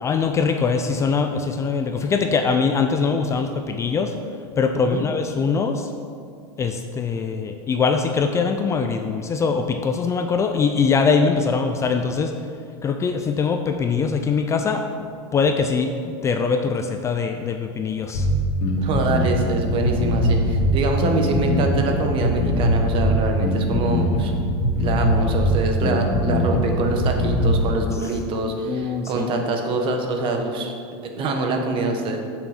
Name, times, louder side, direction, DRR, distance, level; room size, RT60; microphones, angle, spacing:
voice 1, 0.0-4.1 4.6-5.9 6.6-12.3 12.8-18.3 28.7-29.3, left 5 dB, 20° left, 6 dB, 0.4 m, -22 dB
Bass guitar, 18.1-27.7, equal, 50° left, 2.2 m, -21 dB
voice 2, 18.8-24.3 24.8-30.7 31.2-32.2, right 3 dB, 40° right, 3 dB, 1.3 m, -25 dB
7.0 x 6.3 x 7.3 m, 2.3 s
supercardioid pair, 140°, 14 cm